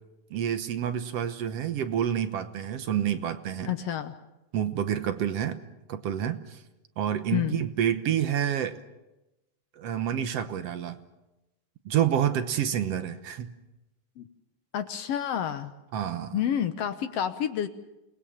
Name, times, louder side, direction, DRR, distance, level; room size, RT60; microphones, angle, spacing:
voice 1, 0.3-3.7 4.5-5.6 5.9-6.6 7.0-8.8 9.8-11.0 11.9-13.5 15.9-16.4, right 9 dB, 65° right, 10 dB, 1.9 m, -28 dB
voice 2, 3.7-4.1 7.3-7.6 14.2-14.3 14.7-15.7 16.3-17.7, left 9 dB, 65° left, 10 dB, 1.8 m, -29 dB
28.5 x 19.5 x 7.3 m, 0.98 s
omnidirectional pair, 3.4 m